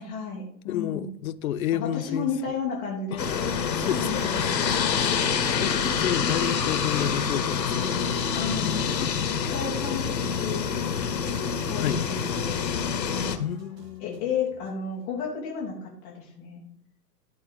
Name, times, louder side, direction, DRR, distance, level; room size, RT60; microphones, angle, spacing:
voice 1, 0.0-1.1 1.7-3.3 3.9-4.5 4.8-5.2 5.8-6.0 8.3-8.8 9.4-10.0 10.3-10.7 11.7-13.3 14.0-16.7, left 5 dB, 5° left, 0.3 m, -33 dB
voice 2, 0.7-2.3 3.1-3.2 3.7-4.7 5.6-8.0 9.0-9.1 9.4-9.5 11.8-12.1 13.4-14.3, left 11 dB, 60° left, 0.6 m, -30 dB
sound 1, 3.2-13.4, left 6 dB, 80° left, 1.0 m, -26 dB
sound 2, 3.7-14.9 15.2-15.3, right 2 dB, 85° right, 1.4 m, -46 dB
10.5 x 4.2 x 4.9 m
figure-of-eight pair, 110°, 49 cm